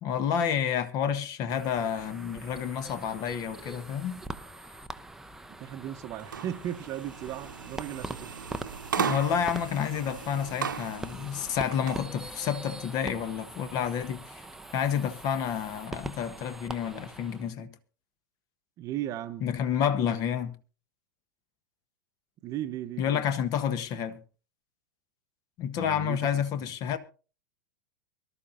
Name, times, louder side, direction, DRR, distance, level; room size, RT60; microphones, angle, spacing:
voice 1, 0.0-4.2 9.0-14.4 14.7-17.7 19.4-20.5 23.0-24.2 25.6-27.0, left 8 dB, 35° left, 1.4 m, -29 dB
sound 1, 1.5-17.5, right 2 dB, 5° right, 0.8 m, -43 dB
voice 2, 5.6-8.4 18.8-19.5 22.4-23.3 25.7-26.7, right 11 dB, 30° right, 1.0 m, -36 dB
sound 2, 6.2-12.0, right 7 dB, 70° right, 1.0 m, -36 dB
24.0 x 13.0 x 2.7 m
figure-of-eight pair, 95°, 11 cm